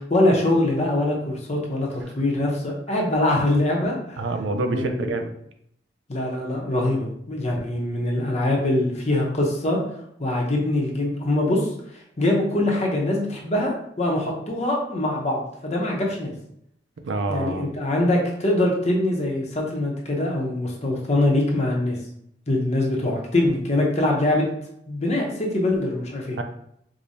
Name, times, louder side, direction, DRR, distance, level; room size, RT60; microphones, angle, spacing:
voice 1, 0.0-4.2 4.7-5.1 6.1-9.8 10.2-16.3 17.3-22.0 22.5-24.5 24.9-26.4, left 1 dB, 35° left, -1 dB, 0.8 m, -23 dB
voice 2, 4.2-5.3 17.0-17.6 26.4-26.5, right 2 dB, 75° right, 6 dB, 0.4 m, -26 dB
4.8 x 2.2 x 2.6 m, 0.73 s
head